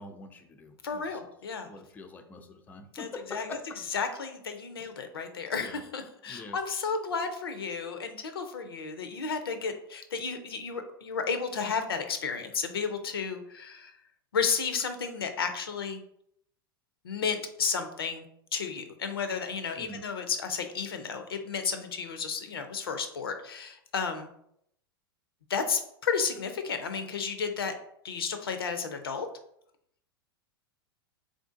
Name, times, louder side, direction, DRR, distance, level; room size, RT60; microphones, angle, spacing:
voice 1, 0.0-1.2 1.7-3.8 5.6-5.8 6.3-6.6 19.8-20.0, left 2 dB, 15° left, 5 dB, 0.4 m, -44 dB
voice 2, 0.8-1.7 2.9-3.6 3.9-13.9 14.3-16.0 17.0-18.2 18.5-24.3 25.5-27.7 28.0-29.3, left 5 dB, 80° left, 8 dB, 0.5 m, -32 dB
3.5 x 2.5 x 2.5 m, 0.72 s
hypercardioid pair, 95°, 12 cm